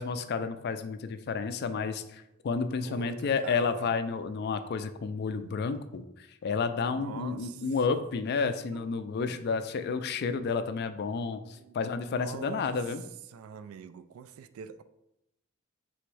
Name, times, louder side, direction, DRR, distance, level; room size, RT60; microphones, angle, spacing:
voice 1, 0.0-13.0, left 5 dB, 50° left, 10 dB, 0.3 m, -31 dB
voice 2, 2.8-3.9 5.4-5.6 6.9-7.6 7.9-8.0 8.7-8.8 9.2-9.4 11.5-11.8 12.1-12.8 13.3-14.8, right 7 dB, 80° right, 12 dB, 0.3 m, -44 dB
3.5 x 3.0 x 4.7 m, 0.86 s
head